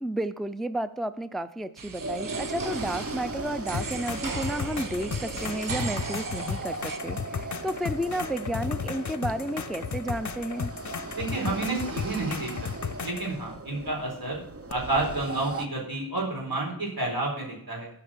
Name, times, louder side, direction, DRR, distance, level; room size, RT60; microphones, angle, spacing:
voice 1, 0.0-10.7, right 1 dB, ahead, 13 dB, 0.5 m, -32 dB
sound 1, 1.8-7.0, right 5 dB, 65° right, 0.9 m, -38 dB
sound 2, 2.0-15.7, right 3 dB, 40° right, 1.0 m, -38 dB
sound 3, 3.7-13.3 14.7-14.8, left 6 dB, 55° left, 0.7 m, -35 dB
voice 2, 11.2-12.5 12.8-14.4 14.7-17.9, right 2 dB, 80° right, -2 dB, 4.5 m, -30 dB
12.5 x 5.9 x 7.3 m, 0.69 s
wide cardioid pair, 55°, 36 cm